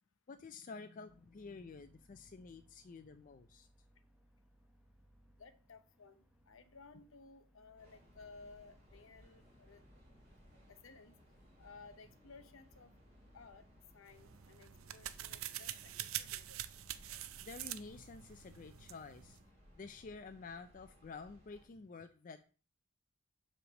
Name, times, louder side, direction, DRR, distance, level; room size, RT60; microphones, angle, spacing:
voice 1, 0.3-3.7 17.4-19.4 19.8-22.4, left 4 dB, 40° left, 8 dB, 0.4 m, -50 dB
sound 1, 1.1-14.4, equal, 5° right, 0.9 m, -68 dB
voice 2, 5.4-9.8 10.7-11.2 11.6-12.9 13.3-13.6 13.9-16.6, left 4 dB, 65° left, 11 dB, 0.8 m, -58 dB
Train, 7.8-21.7, equal, 30° right, 4.2 m, -64 dB
sound 2, 14.1-19.4, right 12 dB, 75° right, 0.5 m, -46 dB
7.6 x 3.3 x 6.2 m, 0.38 s
head